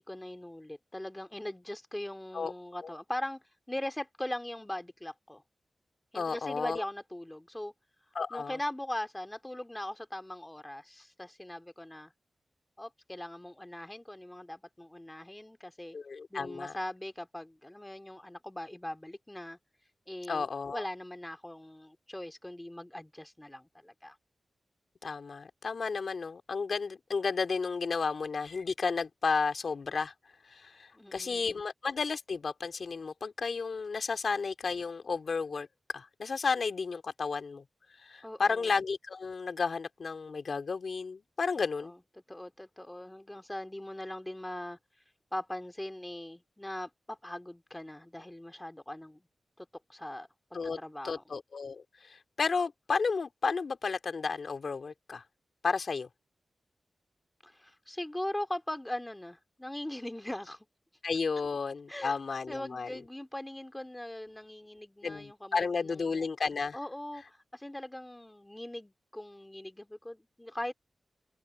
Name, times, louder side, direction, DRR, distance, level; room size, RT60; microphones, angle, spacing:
voice 1, 0.0-5.4 6.1-7.7 8.3-12.1 12.8-16.0 16.3-19.6 20.1-20.5 20.7-24.2 30.9-31.6 38.2-38.7 41.8-41.9 42.3-44.8 45.3-49.3 49.6-51.2 57.4-60.7 61.9-62.1 62.5-66.2 66.7-70.7, left 1 dB, 15° left, 3.3 m, -40 dB
voice 2, 6.1-6.8 8.1-8.6 15.9-16.8 20.3-20.8 25.0-30.1 30.4-35.7 35.9-37.6 37.9-41.9 50.5-50.8 51.0-55.2 55.6-56.1 61.0-62.9 65.0-66.8, left 4 dB, 65° left, 3.0 m, -32 dB
open air
cardioid pair, 50°, 0 cm